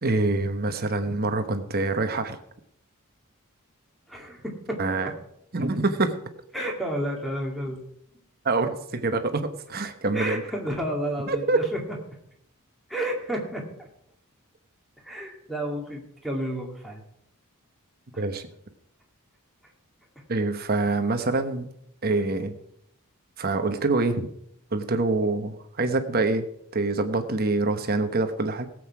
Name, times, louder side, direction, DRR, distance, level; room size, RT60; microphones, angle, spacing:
voice 1, 0.0-2.4 4.8-5.1 5.5-6.2 8.4-10.4 11.3-11.7 18.2-18.5 20.3-21.7 22.0-22.6 23.4-24.3 24.7-26.5 26.7-28.7, right 3 dB, 45° right, 8 dB, 1.2 m, -25 dB
voice 2, 4.1-4.8 6.5-7.8 10.1-11.8 12.9-13.9 15.0-17.0 18.1-18.2, right 1 dB, ahead, 0 dB, 2.3 m, -31 dB
17.5 x 7.9 x 4.8 m, 0.73 s
head